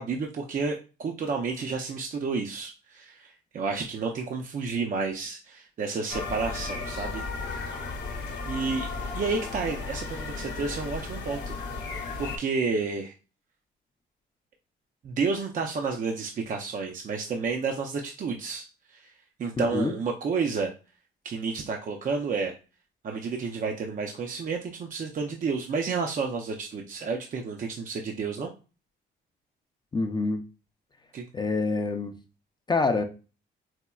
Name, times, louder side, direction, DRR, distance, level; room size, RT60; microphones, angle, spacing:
voice 1, 0.0-7.7 8.4-13.1 15.0-19.1 19.4-20.7 21.2-22.5 23.0-28.5 31.1-31.3, right 4 dB, 40° right, 0.4 m, -31 dB
sound 1, 6.1-12.4, left 3 dB, 55° left, 0.8 m, -34 dB
voice 2, 19.6-19.9 29.9-30.4 31.3-32.2 32.7-33.0, left 3 dB, 20° left, 0.4 m, -26 dB
4.2 x 2.1 x 2.3 m
cardioid pair, 90°, 20 cm